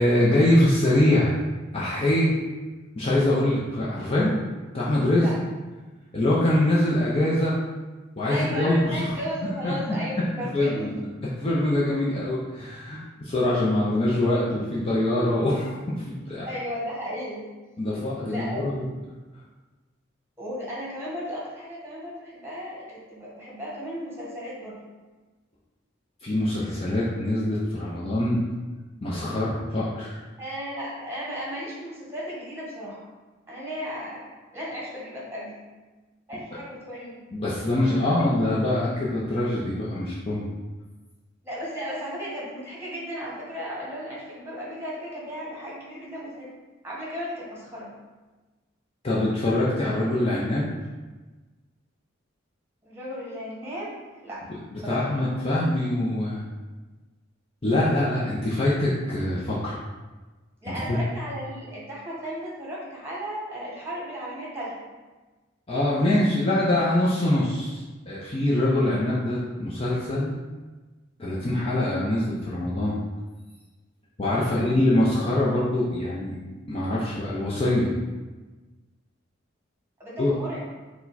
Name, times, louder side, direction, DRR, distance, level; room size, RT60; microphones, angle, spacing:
voice 1, 0.0-1.3 1.7-2.3 3.0-4.3 4.7-5.3 6.1-7.6 8.2-9.1 9.6-9.7 10.4-10.9 11.4-16.5 17.8-18.8 26.2-28.4 29.0-30.2 37.3-40.5 49.0-50.7 54.7-56.4 57.6-59.8 60.9-61.0 65.7-70.4 71.2-73.0 74.2-76.4 76.7-77.9 80.2-80.3, left 1 dB, 30° left, -7 dB, 0.6 m, -24 dB
voice 2, 8.3-11.1 16.4-17.5 18.2-18.8 20.4-24.8 30.4-33.1 33.5-35.6 36.3-37.3 37.8-38.4 41.4-46.5 46.8-47.9 52.8-53.9 54.2-54.4 54.8-55.1 60.6-64.9 74.4-74.7 80.0-80.6, equal, 10° right, -5 dB, 1.2 m, -35 dB
4.7 x 2.2 x 4.0 m, 1.2 s
head